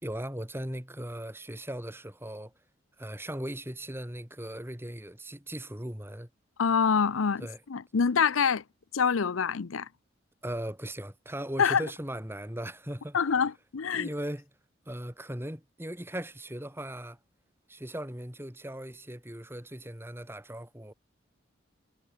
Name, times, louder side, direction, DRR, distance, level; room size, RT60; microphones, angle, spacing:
voice 1, 0.0-2.5 3.0-6.3 7.4-7.6 10.4-13.2 13.9-14.4 14.9-17.2 17.7-20.9, right 1 dB, 10° right, 3.1 m, -38 dB
voice 2, 6.6-7.4 7.7-8.6 8.9-9.9 11.6-11.8 13.1-14.1, left 6 dB, 85° left, 0.6 m, -25 dB
head